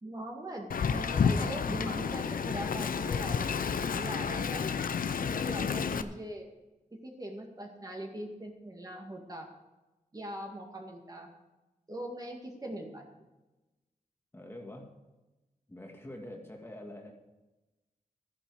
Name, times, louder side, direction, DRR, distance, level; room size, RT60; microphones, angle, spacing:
voice 1, 0.0-3.6 3.9-4.7 5.2-6.5 7.0-9.5 10.1-11.3 11.9-13.1, right 1 dB, 25° right, 1 dB, 2.0 m, -41 dB
Wind, 0.7-6.0, left 6 dB, 80° left, 0.7 m, -30 dB
voice 2, 14.3-14.9 15.7-17.1, left 1 dB, 15° left, 1 dB, 1.9 m, -45 dB
13.5 x 10.5 x 4.9 m, 1.1 s
wide cardioid pair, 125°, 14 cm